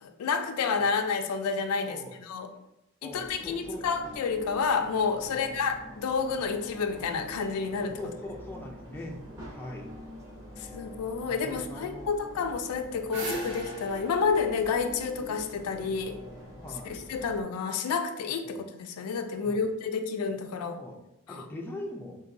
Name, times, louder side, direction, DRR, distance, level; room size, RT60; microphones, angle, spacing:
voice 1, 0.0-2.5 3.0-8.0 10.6-16.2 16.8-20.8 21.3-21.5, left 5 dB, 85° left, 7 dB, 0.4 m, -30 dB
voice 2, 1.8-2.1 3.0-3.9 5.3-5.5 8.0-9.2 9.5-10.1 11.3-12.1 16.6-17.0 18.4-18.5 19.4-19.6 20.8-21.0 21.3-22.1, left 1 dB, 10° left, -1 dB, 0.3 m, -41 dB
sound 1, 3.1-17.4, left 1 dB, 15° right, 0.8 m, -46 dB
sound 2, 12.6-15.8, right 1 dB, 50° right, 0.7 m, -39 dB
3.7 x 2.6 x 2.5 m, 0.88 s
head